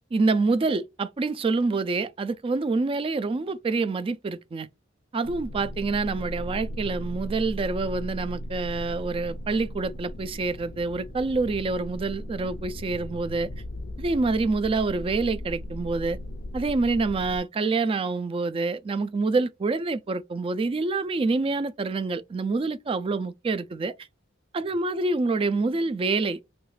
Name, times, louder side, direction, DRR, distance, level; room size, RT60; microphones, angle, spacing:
voice 1, 0.1-4.7 5.1-13.5 14.0-16.2 16.5-23.9 24.5-26.4, right 3 dB, 30° right, 0.3 m, -26 dB
sound 1, 5.2-17.4, equal, 50° left, 0.4 m, -37 dB
3.1 x 2.4 x 3.1 m
head